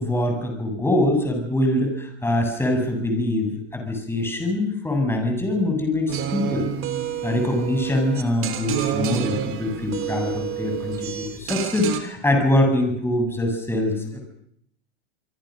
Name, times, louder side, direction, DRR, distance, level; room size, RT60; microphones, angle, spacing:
voice 1, 0.0-6.7 7.2-14.3, left 1 dB, 5° left, 3 dB, 8.0 m, -23 dB
sound 1, 6.1-12.0, right 10 dB, 35° right, 3.5 m, -29 dB
26.0 x 25.0 x 6.6 m, 0.69 s
hypercardioid pair, 115°, 34 cm